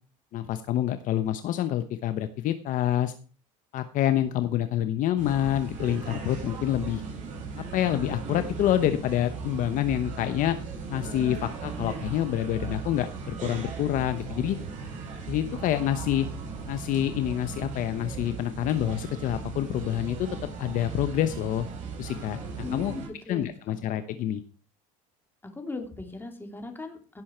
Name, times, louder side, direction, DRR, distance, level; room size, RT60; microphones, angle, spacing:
voice 1, 0.3-3.1 3.7-7.0 7.7-10.6 10.9-14.6 15.3-16.3 16.7-20.2 20.6-21.7 22.0-22.4 22.7-22.9 23.3-24.4, left 12 dB, 55° left, 10 dB, 0.9 m, -27 dB
sound 1, 5.2-23.1, right 4 dB, 50° right, 6.6 m, -37 dB
voice 2, 22.6-23.8 25.4-27.2, left 3 dB, 15° left, 4 dB, 2.8 m, -39 dB
16.5 x 6.3 x 4.4 m, 0.37 s
supercardioid pair, 105°, 16 cm